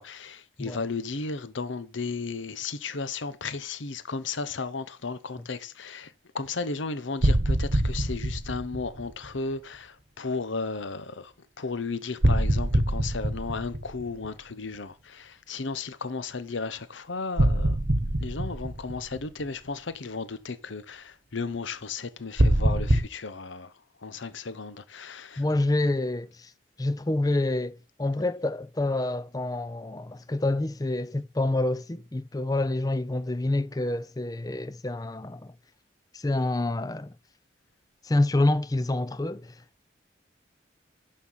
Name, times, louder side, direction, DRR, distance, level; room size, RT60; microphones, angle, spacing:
voice 1, 0.0-11.3 11.6-17.8 18.2-23.7 24.0-25.4, left 4 dB, 80° left, 0.9 m, -34 dB
sound 1, 7.2-9.3 12.2-14.5 17.4-19.4 22.4-23.0, right 1 dB, 60° right, 1.1 m, -24 dB
voice 2, 25.4-26.5 26.8-35.5 36.1-37.1 38.0-39.5, left 2 dB, 20° left, 0.4 m, -27 dB
11.0 x 4.4 x 5.6 m
head